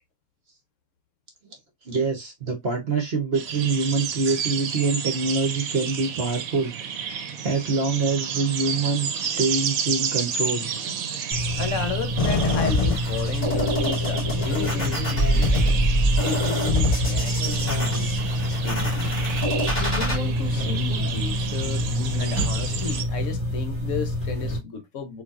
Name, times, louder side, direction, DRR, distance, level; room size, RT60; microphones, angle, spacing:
voice 1, 1.8-10.7, right 4 dB, 50° right, 0.9 m, -25 dB
sound 1, 3.3-23.0, right 7 dB, 75° right, 1.1 m, -31 dB
sound 2, 11.3-24.6, left 1 dB, 10° right, 1.5 m, -27 dB
voice 2, 11.6-15.6 16.2-18.1 18.4-19.3 19.8-21.9 22.2-25.2, left 5 dB, 65° left, 1.0 m, -33 dB
sound 3, 12.2-20.1, equal, 30° left, 2.2 m, -25 dB
4.3 x 2.6 x 2.4 m
omnidirectional pair, 1.5 m